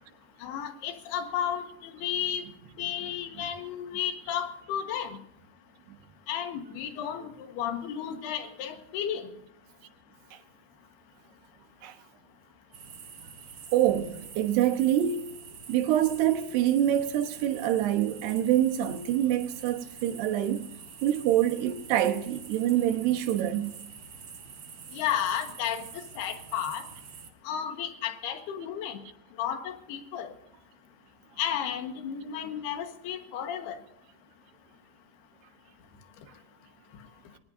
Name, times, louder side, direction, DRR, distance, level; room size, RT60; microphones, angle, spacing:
voice 1, 0.4-2.5 2.8-5.2 6.3-9.3 24.9-26.9 27.5-29.0 29.4-30.3 31.4-33.8, left 9 dB, 80° left, 3.5 m, -33 dB
sound 1, 12.7-27.3, right 6 dB, 70° right, 1.1 m, -46 dB
voice 2, 13.7-15.3 15.7-20.7 21.0-23.8, right 12 dB, 85° right, 3.3 m, -26 dB
22.0 x 19.5 x 2.7 m
omnidirectional pair, 4.6 m